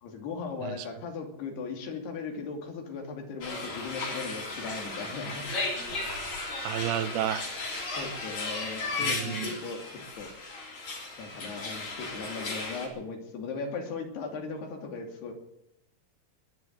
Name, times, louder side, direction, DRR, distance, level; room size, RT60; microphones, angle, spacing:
voice 1, 0.0-5.4 8.0-9.8 10.2-10.3 11.2-15.3, left 4 dB, 85° left, 3 dB, 4.7 m, -38 dB
sound 1, 3.4-12.9, left 3 dB, 60° left, 5.3 m, -35 dB
voice 2, 5.9-7.5 9.0-9.5, right 12 dB, 80° right, 13 dB, 2.7 m, -33 dB
19.0 x 11.0 x 6.4 m, 0.81 s
omnidirectional pair, 4.6 m